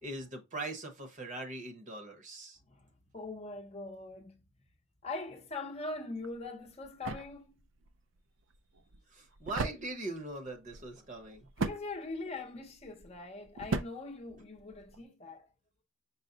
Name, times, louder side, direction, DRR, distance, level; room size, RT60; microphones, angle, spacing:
voice 1, 0.0-2.6 9.1-11.5, right 2 dB, 40° right, 0.9 m, -41 dB
voice 2, 2.7-4.4 5.0-7.5 11.6-15.5, left 3 dB, 35° left, 0.7 m, -42 dB
sound 1, 6.2-15.0, right 3 dB, 70° right, 0.5 m, -41 dB
5.6 x 2.1 x 3.8 m
head